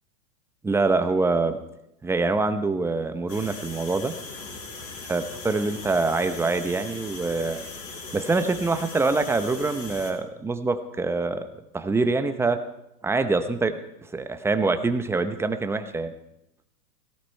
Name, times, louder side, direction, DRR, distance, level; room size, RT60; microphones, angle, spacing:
voice 1, 0.6-1.6 2.0-4.1 5.1-7.6 8.1-11.5 11.7-12.6 13.0-13.8 14.1-16.1, right 3 dB, 5° right, 9 dB, 0.7 m, -25 dB
sound 1, 3.3-10.1, left 3 dB, 50° left, 5.7 m, -39 dB
17.0 x 17.0 x 4.5 m, 0.85 s
hypercardioid pair, 130°, 48 cm